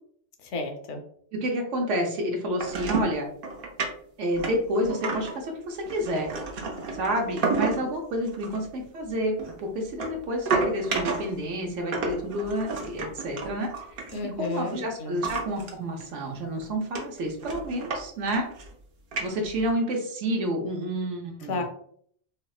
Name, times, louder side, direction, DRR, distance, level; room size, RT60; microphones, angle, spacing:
voice 1, 0.5-1.0 14.1-15.2 21.5-21.6, left 2 dB, 85° left, 4 dB, 0.9 m, -32 dB
voice 2, 1.3-3.3 4.2-6.3 6.9-13.7 14.4-18.5 19.2-21.6, equal, 85° right, 1 dB, 1.1 m, -29 dB
sound 1, 2.6-3.2 3.4-3.9 4.3-5.4 5.8-7.9 8.3-8.6 9.4-11.4 11.9-14.7 15.2-15.7 16.0-16.1 16.6-16.7 16.9-18.0 18.3-18.7 19.1-19.7, right 4 dB, 55° right, 0.7 m, -31 dB
3.4 x 2.1 x 2.3 m, 0.62 s
omnidirectional pair, 1.2 m